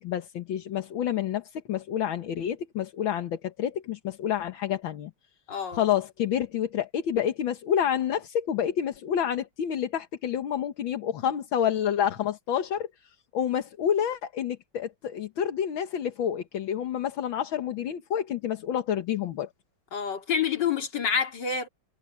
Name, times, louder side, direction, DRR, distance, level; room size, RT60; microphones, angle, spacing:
voice 1, 0.0-5.1 5.7-19.5, left 9 dB, 75° left, 2.0 m, -29 dB
voice 2, 5.5-5.9 19.9-21.7, left 7 dB, 60° left, 3.2 m, -28 dB
omnidirectional pair, 2.2 m